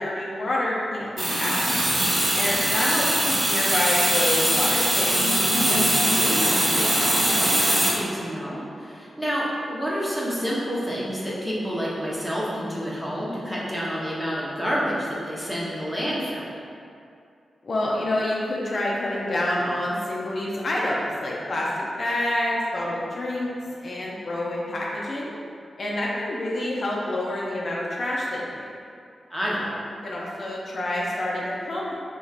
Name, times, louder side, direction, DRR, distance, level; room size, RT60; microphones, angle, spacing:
voice 1, 0.0-1.6 2.4-5.1 17.6-23.5 23.8-25.3 25.8-28.6 30.0-31.9, left 1 dB, 60° left, -5 dB, 0.6 m, -27 dB
sound 1, 1.2-7.9, right 1 dB, 65° right, 1.4 m, -22 dB
voice 2, 5.4-16.5 29.3-29.7, equal, 5° right, -7 dB, 1.1 m, -29 dB
4.1 x 3.0 x 2.4 m, 2.4 s
cardioid pair, 50°, 0 cm